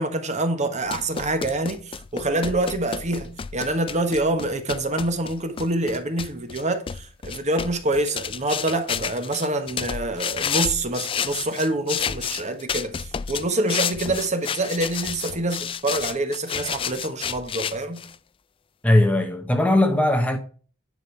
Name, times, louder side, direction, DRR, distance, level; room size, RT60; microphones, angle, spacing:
voice 1, 0.0-18.0, right 2 dB, 35° right, 1.3 m, -26 dB
sound 1, 0.9-18.2, left 7 dB, 25° left, 0.3 m, -31 dB
voice 2, 18.8-20.4, left 1 dB, 5° left, 0.9 m, -19 dB
9.7 x 5.2 x 4.6 m
head